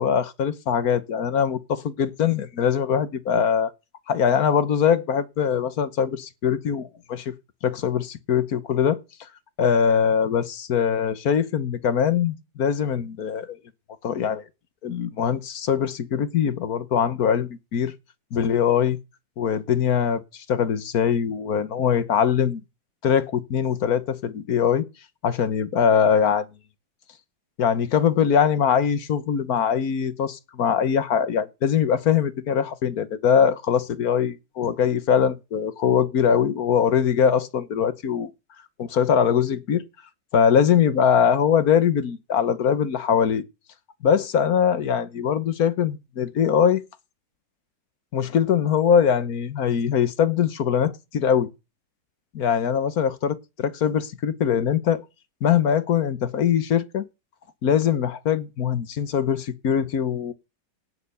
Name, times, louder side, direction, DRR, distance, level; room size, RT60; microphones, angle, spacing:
voice 1, 0.0-3.7 4.1-7.3 7.6-9.0 9.6-13.6 14.0-14.4 14.8-17.9 18.3-19.0 19.4-22.6 23.0-24.8 25.2-26.5 27.6-38.3 38.8-39.8 40.3-43.4 44.0-46.8 48.1-51.5 52.3-55.0 55.4-57.0 57.6-60.3, left 7 dB, 60° left, 1.5 m, -22 dB
17.5 x 6.8 x 6.8 m
omnidirectional pair, 1.9 m